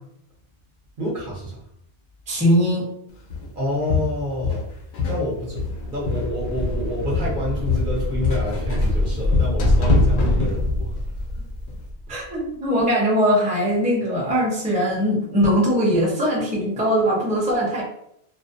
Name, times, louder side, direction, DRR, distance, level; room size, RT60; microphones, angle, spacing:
voice 1, 1.0-1.6 3.5-4.7 5.1-5.6 5.9-10.9, equal, 55° right, -4 dB, 0.9 m, -28 dB
voice 2, 2.3-2.8 12.1-17.8, equal, 10° right, -4 dB, 0.5 m, -21 dB
Walk footsteps, 3.3-3.5 3.9-5.3 5.6-6.9 7.1-10.6 10.9-11.2 11.7-11.8, left 5 dB, 85° left, 0.8 m, -26 dB
sound 1, 5.5-12.2, left 1 dB, 60° left, 0.7 m, -23 dB
2.4 x 2.1 x 2.5 m, 0.74 s
omnidirectional pair, 1.0 m